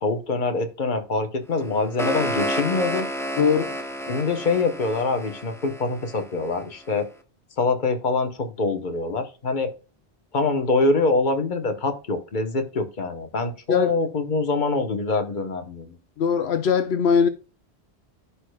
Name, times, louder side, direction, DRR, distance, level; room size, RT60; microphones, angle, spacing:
voice 1, 0.0-3.1 4.1-7.1 7.6-9.7 10.3-16.0, left 3 dB, 50° left, 1.2 m, -24 dB
sound 1, 1.6-6.6, equal, 5° left, 0.6 m, -31 dB
voice 2, 3.4-3.8 13.7-13.9 16.2-17.3, left 6 dB, 80° left, 0.9 m, -20 dB
14.5 x 5.0 x 2.2 m
omnidirectional pair, 1.1 m